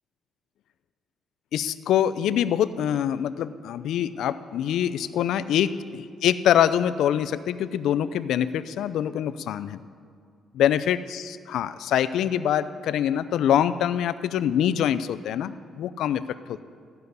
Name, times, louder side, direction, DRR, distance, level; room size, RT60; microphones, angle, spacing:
voice 1, 1.5-5.7 6.2-9.8 10.5-16.2 16.5-16.6, left 10 dB, 80° left, 14 dB, 0.5 m, -24 dB
14.0 x 6.9 x 9.4 m, 2.2 s
cardioid pair, 90°, 0 cm